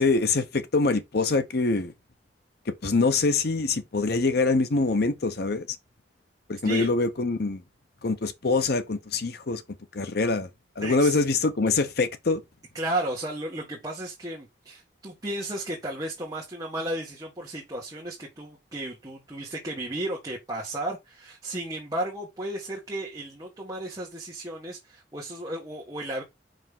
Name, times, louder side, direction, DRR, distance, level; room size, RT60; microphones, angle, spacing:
voice 1, 0.0-1.9 2.7-5.7 6.5-7.6 8.0-9.6 9.9-10.5 10.8-12.4, left 3 dB, 60° left, 0.8 m, -24 dB
voice 2, 10.8-11.2 12.7-26.2, right 1 dB, 20° right, 1.7 m, -34 dB
5.5 x 5.1 x 3.7 m
head